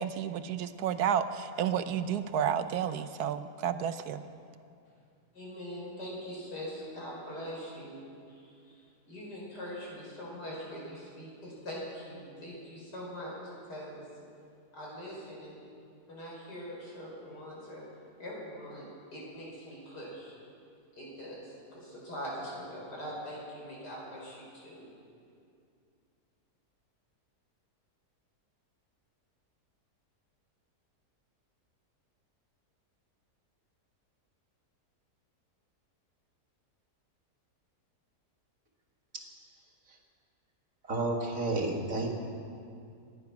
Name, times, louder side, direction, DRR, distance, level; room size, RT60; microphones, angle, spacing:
voice 1, 0.0-4.2, right 8 dB, 75° right, 11 dB, 1.2 m, -31 dB
voice 2, 5.3-13.4 13.7-14.1 14.7-15.6 16.1-17.8 18.2-20.3 21.0-24.9, equal, 90° left, -5 dB, 5.5 m, -42 dB
voice 3, 40.9-42.1, right 2 dB, 55° right, 1 dB, 2.2 m, -30 dB
25.5 x 9.7 x 5.9 m, 2.4 s
omnidirectional pair, 1.7 m